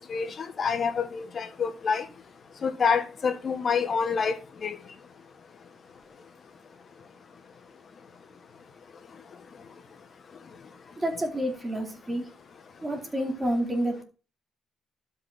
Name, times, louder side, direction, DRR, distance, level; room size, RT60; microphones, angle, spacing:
voice 1, 0.1-2.0 2.6-4.8, left 6 dB, 45° left, 1.8 m, -27 dB
voice 2, 11.0-12.2 12.8-14.0, right 1 dB, 20° right, 4.2 m, -29 dB
12.0 x 6.2 x 4.4 m
cardioid pair, 85°, 0 cm